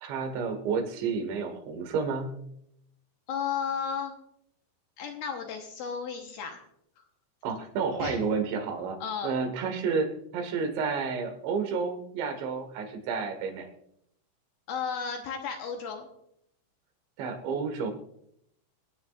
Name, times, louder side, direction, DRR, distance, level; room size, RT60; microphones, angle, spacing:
voice 1, 0.0-2.4 7.4-9.0 9.2-10.1 10.3-13.7 17.2-17.9, right 5 dB, 85° right, 6 dB, 3.8 m, -30 dB
voice 2, 3.3-4.1 5.0-6.6 8.0-8.2 9.0-9.3 14.7-16.1, left 6 dB, 70° left, 3 dB, 2.5 m, -33 dB
26.5 x 9.4 x 2.4 m, 0.74 s
omnidirectional pair, 5.0 m